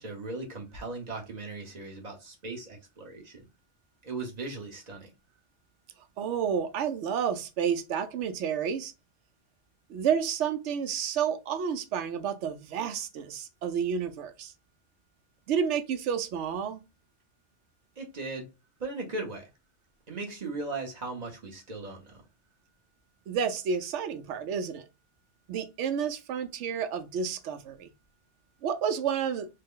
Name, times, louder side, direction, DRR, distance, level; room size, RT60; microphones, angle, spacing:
voice 1, 0.0-3.4 4.0-5.1 18.0-18.5 18.8-19.5 20.1-22.2, right 3 dB, 40° right, 0.9 m, -38 dB
voice 2, 6.2-8.9 9.9-14.5 15.5-16.8 23.3-24.8 25.5-27.9 28.6-29.5, right 7 dB, 80° right, 0.9 m, -30 dB
3.2 x 2.1 x 3.5 m
omnidirectional pair, 1.2 m